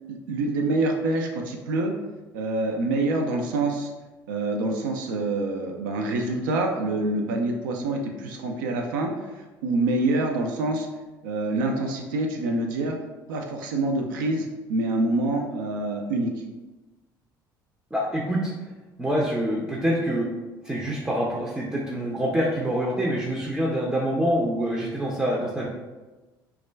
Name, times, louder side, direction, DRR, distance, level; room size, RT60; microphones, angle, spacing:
voice 1, 0.1-1.9 2.3-3.9 4.3-10.9 11.2-13.0 13.3-16.3, right 2 dB, 70° right, 2 dB, 0.4 m, -26 dB
voice 2, 17.9-18.5 19.0-20.3 20.6-25.7, equal, 10° right, -4 dB, 0.5 m, -26 dB
2.3 x 2.1 x 3.2 m, 1.2 s
figure-of-eight pair, 55°, 11 cm